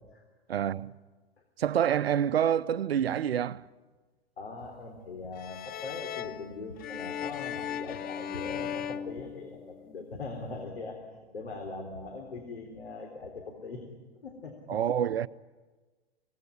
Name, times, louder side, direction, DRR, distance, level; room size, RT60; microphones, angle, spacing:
voice 1, 0.5-0.9 1.6-3.7 14.7-15.3, right 9 dB, 70° right, 0.8 m, -27 dB
voice 2, 4.4-11.0 11.3-13.8 14.2-14.8, left 3 dB, 75° left, 3.7 m, -41 dB
sound 1, 5.3-10.0, left 9 dB, 30° left, 1.0 m, -37 dB
26.0 x 18.5 x 9.8 m
figure-of-eight pair, 95°, 31 cm